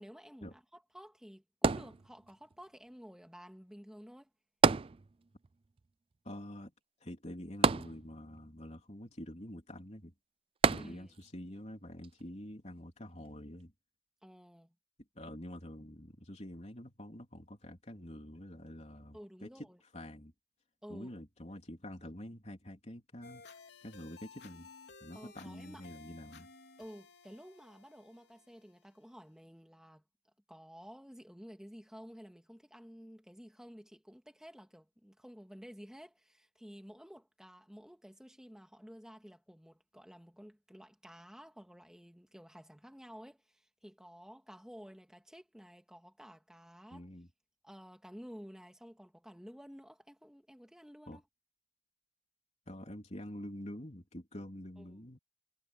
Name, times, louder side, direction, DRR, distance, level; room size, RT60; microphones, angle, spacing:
voice 1, 0.0-4.3 10.8-11.2 14.2-14.7 19.1-19.8 20.8-21.2 25.1-25.9 26.8-30.0 30.5-47.1 47.6-51.2 54.8-55.0, equal, 5° right, 2.1 m, -53 dB
sound 1, 1.6-2.5 4.6-5.5 5.8-5.9 7.6-8.5 10.6-11.3 12.0-12.1, right 5 dB, 30° right, 0.3 m, -29 dB
voice 2, 6.2-6.7 7.0-10.1 10.7-13.7 15.2-19.7 19.9-20.3 20.9-23.5 23.8-24.7 25.0-26.5 46.9-47.3 51.1-51.2 52.7-55.2, equal, 35° left, 3.6 m, -47 dB
sound 2, 23.2-29.2, left 4 dB, 55° left, 4.0 m, -56 dB
head